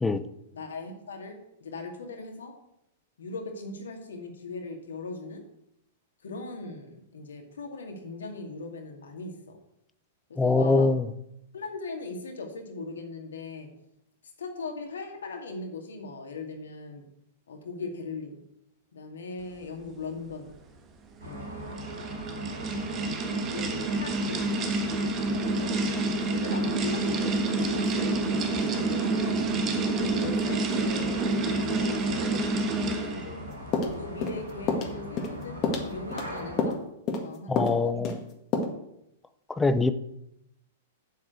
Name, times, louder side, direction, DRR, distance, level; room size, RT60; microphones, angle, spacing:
voice 1, 0.5-2.5 3.2-5.4 6.2-9.3 10.3-10.9 11.5-13.7 14.4-17.1 17.5-18.4 18.9-20.6 21.2-22.1 22.9-24.5 25.5-25.7 26.3-29.4 30.0-32.5 32.8-33.4 33.8-36.8 37.2-38.0, left 3 dB, 65° left, 3 dB, 2.3 m, -39 dB
voice 2, 10.4-11.1 37.5-38.2 39.6-39.9, left 3 dB, 10° left, 12 dB, 0.7 m, -23 dB
sound 1, 21.2-33.4, right 2 dB, 30° right, 1.4 m, -28 dB
sound 2, 21.2-36.6, left 1 dB, 80° right, 4.2 m, -41 dB
sound 3, 33.7-34.4 34.7-34.9 35.2-35.4 35.6-36.3 36.6-36.8 37.1-37.3 37.6-37.8 38.0-38.2 38.5-38.6, left 4 dB, 30° left, 1.8 m, -28 dB
7.5 x 7.2 x 8.0 m, 0.81 s
figure-of-eight pair, 100°, 0 cm